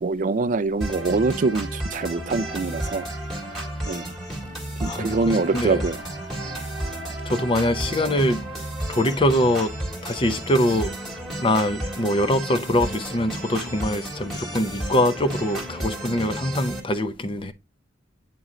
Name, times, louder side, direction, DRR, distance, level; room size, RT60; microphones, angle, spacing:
voice 1, 0.0-3.0 3.9-4.1 4.8-6.0, right 3 dB, 45° right, 0.3 m, -24 dB
sound 1, 0.8-16.8, right 1 dB, ahead, 1.7 m, -32 dB
voice 2, 4.8-5.8 7.3-8.4 8.9-9.7 10.0-10.9 11.4-17.5, left 1 dB, 30° left, 0.6 m, -23 dB
Wind instrument woodwind instrument, 5.1-12.4, right 4 dB, 75° left, 2.4 m, -48 dB
8.4 x 3.0 x 3.7 m
head